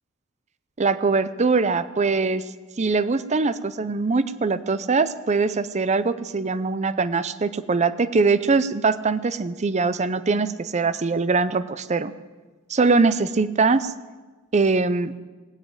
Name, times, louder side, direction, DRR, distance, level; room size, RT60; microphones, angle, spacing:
voice 1, 0.8-2.4 2.8-12.1 12.7-13.9 14.5-15.1, right 4 dB, 35° right, 14 dB, 0.6 m, -22 dB
19.0 x 7.8 x 8.9 m, 1.3 s
head